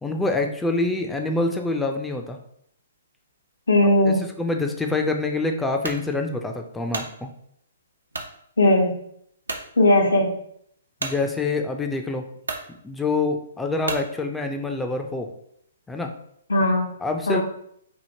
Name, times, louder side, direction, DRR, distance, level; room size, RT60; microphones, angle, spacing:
voice 1, 0.0-2.4 3.8-7.3 11.0-12.2 12.7-15.3 15.9-16.1 17.0-17.4, left 3 dB, 5° left, 3 dB, 0.4 m, -26 dB
voice 2, 3.7-4.2 8.6-9.0 9.8-10.3 16.5-16.9 17.3-17.4, left 1 dB, 75° left, 2 dB, 0.8 m, -18 dB
sound 1, 5.8-6.0 6.6-7.1 8.1-8.3 8.9-9.0 9.4-9.7 11.0-11.2 12.0-12.1 12.4-12.7 13.8-14.1, right 3 dB, 80° right, 0.5 m, -31 dB
2.8 x 2.7 x 2.6 m, 0.70 s
figure-of-eight pair, 125°, 0 cm